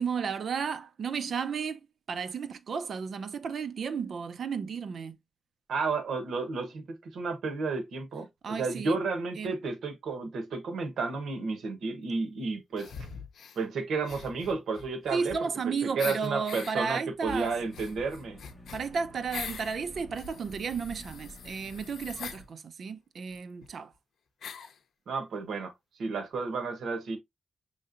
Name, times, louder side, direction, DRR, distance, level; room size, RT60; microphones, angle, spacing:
voice 1, 0.0-1.8 2.1-5.2 8.4-9.0 9.4-9.6 15.1-17.5 18.7-23.9, right 6 dB, 55° right, 0.6 m, -33 dB
voice 2, 5.7-12.9 13.5-15.3 15.6-18.4 25.1-25.7 26.0-27.2, right 4 dB, 85° right, 1.1 m, -32 dB
sound 1, 12.8-13.6 14.0-15.6 16.0-16.7 17.2-19.8 20.1-22.4 23.3-23.4 23.6-23.7 24.4-24.8, left 6 dB, 75° left, 0.6 m, -43 dB
sound 2, 17.3-22.5, left 1 dB, 15° left, 1.4 m, -49 dB
6.5 x 3.2 x 2.5 m
wide cardioid pair, 160°, 0 cm